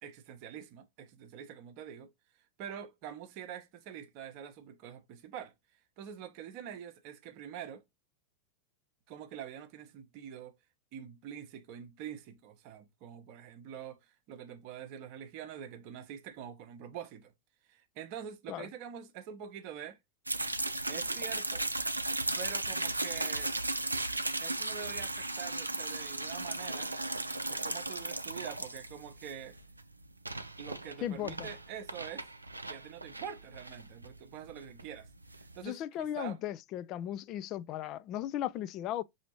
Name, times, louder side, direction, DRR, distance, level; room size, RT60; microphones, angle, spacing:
voice 1, 0.0-2.1 2.6-5.5 6.0-7.8 9.1-10.5 10.9-17.3 17.7-20.0 20.9-21.7 22.3-23.5 24.4-26.9 27.5-29.6 30.6-32.3 32.6-35.1 35.4-36.4, right 9 dB, 45° right, 0.7 m, -45 dB
sound 1, 20.3-35.6, right 2 dB, 80° right, 0.5 m, -36 dB
voice 2, 31.0-31.5 35.6-39.0, left 12 dB, 35° left, 0.3 m, -36 dB
6.0 x 2.8 x 2.9 m
figure-of-eight pair, 90°, 0 cm